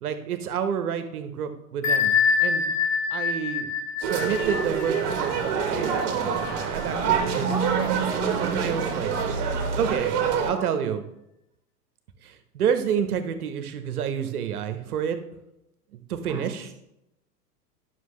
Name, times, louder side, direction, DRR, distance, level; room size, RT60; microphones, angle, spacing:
voice 1, 0.0-2.7 3.1-3.7 4.0-7.5 8.4-9.2 9.8-10.1 10.5-11.0 12.2-15.2 16.1-16.7, right 8 dB, 65° right, 9 dB, 1.1 m, -29 dB
Bell, 1.8-7.3, left 6 dB, 50° left, 1.7 m, -26 dB
sound 1, 4.0-10.5, right 6 dB, 45° right, 1.4 m, -26 dB
voice 2, 7.5-9.3 10.5-10.7 16.3-16.6, right 3 dB, 5° right, 3 dB, 0.4 m, -37 dB
11.0 x 6.1 x 3.2 m, 0.85 s
figure-of-eight pair, 95°, 48 cm